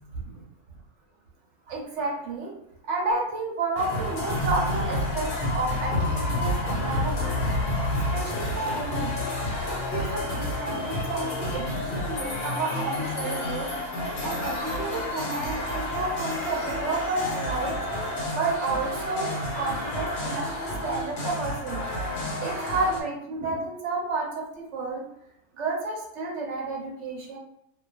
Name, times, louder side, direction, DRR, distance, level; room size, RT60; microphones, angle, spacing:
voice 1, 0.1-0.4 1.7-2.5 2.8-7.4 8.1-9.1 9.6-13.7 14.2-17.8 18.3-21.8 22.4-25.0 25.5-27.4, right 3 dB, 65° right, -1 dB, 0.8 m, -31 dB
sound 1, 3.8-23.0, left 1 dB, 85° left, 1.1 m, -29 dB
2.3 x 2.3 x 2.3 m, 0.75 s
omnidirectional pair, 1.5 m